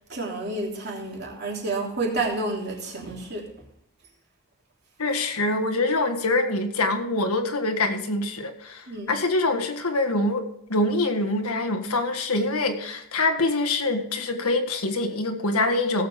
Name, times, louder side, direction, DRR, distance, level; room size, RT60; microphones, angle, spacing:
voice 1, 0.1-3.5 8.9-9.2, right 2 dB, 50° right, 3.2 m, -30 dB
voice 2, 5.0-16.1, left 2 dB, 90° left, 1.7 m, -25 dB
17.5 x 7.7 x 3.6 m
head